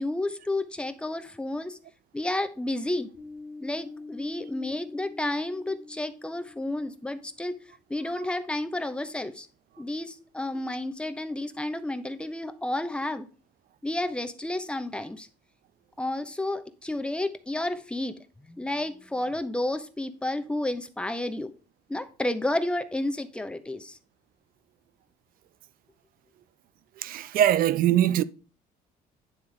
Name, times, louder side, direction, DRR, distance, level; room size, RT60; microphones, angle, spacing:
voice 1, 0.0-1.8 2.1-3.1 3.6-7.6 7.9-9.5 9.8-13.3 13.8-15.3 16.0-21.5 21.9-24.0, left 1 dB, 5° left, 0.8 m, -31 dB
sound 1, 3.1-7.4, left 3 dB, 15° right, 1.7 m, -45 dB
voice 2, 27.0-28.2, right 11 dB, 60° right, 0.5 m, -22 dB
9.6 x 3.5 x 5.1 m
cardioid pair, 110°, 17 cm